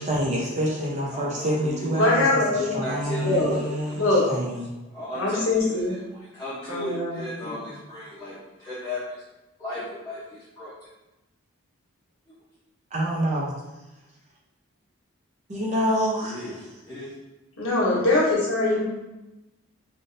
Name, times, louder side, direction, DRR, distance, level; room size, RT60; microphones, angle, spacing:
voice 1, 0.0-4.7 12.9-13.5 15.5-16.4, equal, 30° right, -4 dB, 0.6 m, -27 dB
voice 2, 0.8-2.1 2.5-4.4 4.9-9.2 9.6-10.7 12.3-12.4 16.2-17.1 17.9-18.2, left 1 dB, 10° left, -13 dB, 0.7 m, -36 dB
voice 3, 2.0-2.8 3.2-3.5 4.0-4.3 5.1-6.0 6.7-7.5 17.6-18.8, left 2 dB, 75° left, -6 dB, 1.2 m, -23 dB
3.5 x 2.6 x 2.6 m, 1.0 s
head